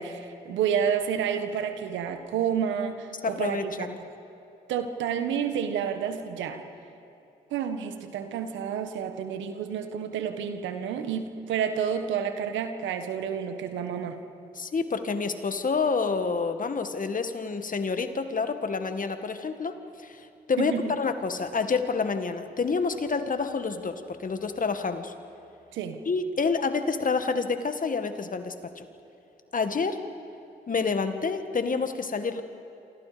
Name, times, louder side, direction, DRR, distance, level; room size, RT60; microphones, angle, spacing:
voice 1, 0.0-3.9 4.7-6.6 7.5-14.2 20.6-21.0 25.7-26.0, right 8 dB, 85° right, 8 dB, 1.7 m, -30 dB
voice 2, 3.2-4.0 14.6-25.1 26.1-28.9 29.5-30.0 30.7-32.4, left 4 dB, 45° left, 8 dB, 2.0 m, -28 dB
28.0 x 25.5 x 5.2 m, 2.9 s
supercardioid pair, 50°, 19 cm